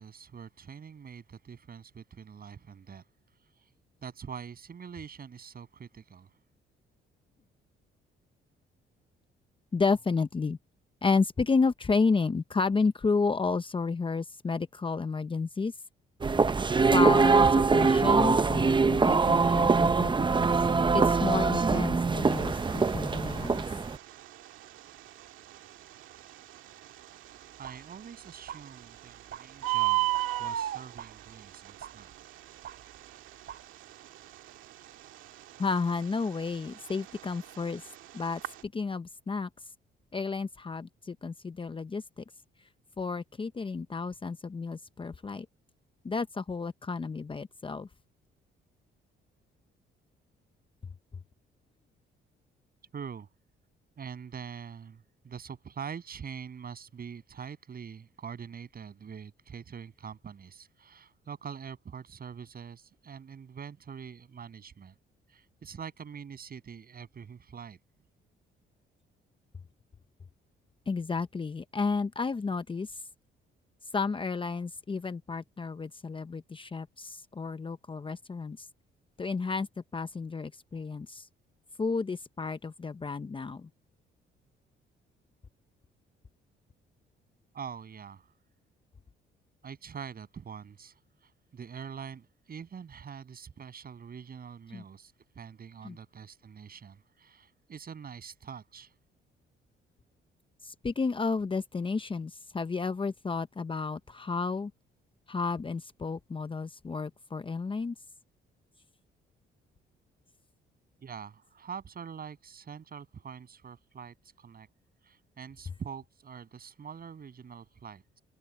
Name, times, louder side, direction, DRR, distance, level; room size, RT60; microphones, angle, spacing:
voice 1, 0.0-3.0 4.0-6.3 27.6-30.1 30.4-32.1 52.9-53.3 54.0-65.0 65.3-67.8 87.5-88.3 89.6-98.9 111.0-114.7 115.0-118.2, right 7 dB, 50° right, 7.2 m, -44 dB
voice 2, 9.7-10.6 11.0-15.7 16.9-20.1 20.4-20.5 20.9-23.6 35.6-37.8 38.1-39.5 40.1-42.2 43.0-45.5 46.0-47.9 70.9-73.0 73.9-78.7 79.2-79.7 79.9-81.3 81.8-83.7 94.7-94.8 95.8-96.0 100.6-104.7 105.3-107.9, left 4 dB, 25° left, 0.9 m, -31 dB
sound 1, 16.2-24.0, right 4 dB, 25° right, 0.8 m, -23 dB
Bird, 22.3-38.6, right 18 dB, 85° right, 2.0 m, -36 dB
sound 2, 27.4-33.6, right 10 dB, 65° right, 2.8 m, -49 dB
open air
cardioid pair, 90°, 20 cm